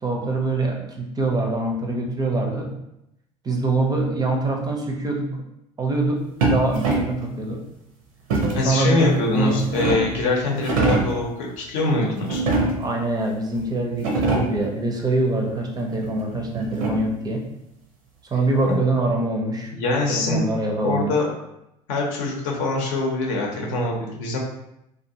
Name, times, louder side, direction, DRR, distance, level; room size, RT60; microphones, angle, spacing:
voice 1, 0.0-2.7 3.4-5.4 5.8-7.6 8.6-9.6 12.8-17.4 18.3-19.7 20.1-21.1, right 2 dB, 20° right, 1 dB, 0.5 m, -24 dB
sound 1, 6.4-7.2 8.3-8.7 9.4-10.2 10.6-11.2 12.3-13.0 13.6-13.7 13.9-14.7 16.0-17.2, right 3 dB, 70° right, 0.6 m, -23 dB
voice 2, 8.5-12.4 18.6-18.8 19.7-20.5 20.8-21.3 21.9-24.4, left 2 dB, 65° left, -1 dB, 0.7 m, -23 dB
2.4 x 2.2 x 2.6 m, 0.84 s
figure-of-eight pair, 65°, 18 cm